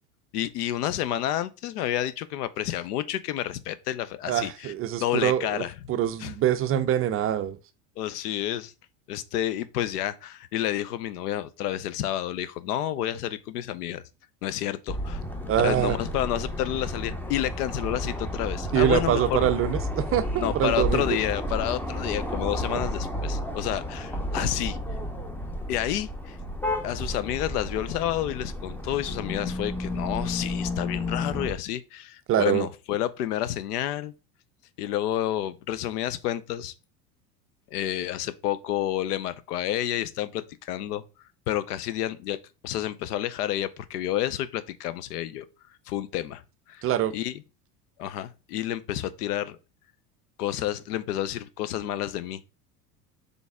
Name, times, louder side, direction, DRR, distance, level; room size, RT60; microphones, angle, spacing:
voice 1, 0.3-4.7 5.0-5.7 6.2-6.3 8.0-8.7 9.1-14.0 14.4-15.2 15.6-19.5 20.4-24.8 25.7-26.4 26.8-34.1 34.8-36.7 37.7-41.0 41.5-42.4 42.6-45.5 45.9-46.4 46.7-46.9 47.1-47.4 48.0-49.6 50.4-52.4, left 12 dB, 80° left, 0.6 m, -30 dB
voice 2, 4.3-7.6 15.5-16.0 18.7-21.2 22.7-22.8 32.3-32.7 46.8-47.1, right 11 dB, 30° right, 0.4 m, -25 dB
sound 1, 14.9-31.5, left 1 dB, 5° left, 0.6 m, -32 dB
4.0 x 3.4 x 3.5 m
hypercardioid pair, 85°, 46 cm